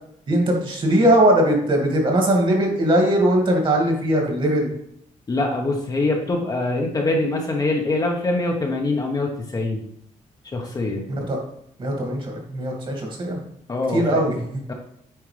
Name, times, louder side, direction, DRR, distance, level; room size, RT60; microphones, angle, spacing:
voice 1, 0.3-4.7 11.1-11.4 11.8-13.4 13.9-14.7, right 1 dB, 40° right, 0 dB, 2.1 m, -20 dB
voice 2, 5.3-9.8 10.5-11.1 13.7-14.2 14.7-14.8, left 2 dB, 30° left, 1 dB, 1.0 m, -24 dB
9.0 x 4.6 x 3.3 m, 0.73 s
wide cardioid pair, 150°, 14 cm